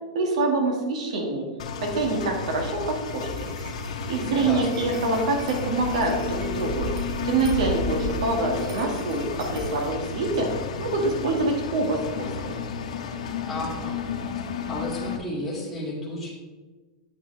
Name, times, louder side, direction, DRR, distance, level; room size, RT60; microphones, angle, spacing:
voice 1, 0.1-1.4 1.8-3.3 4.1-6.9 7.2-10.5 10.8-12.6, right 3 dB, 80° right, 1 dB, 2.0 m, -25 dB
Engine, 1.6-15.2, left 6 dB, 85° left, 0.8 m, -32 dB
sound 1, 3.1-9.9, right 1 dB, 55° right, 2.5 m, -36 dB
voice 2, 4.3-4.9 13.5-14.0 14.7-16.3, left 1 dB, ahead, -9 dB, 2.4 m, -32 dB
8.6 x 6.0 x 3.4 m, 1.3 s
supercardioid pair, 135°, 3 cm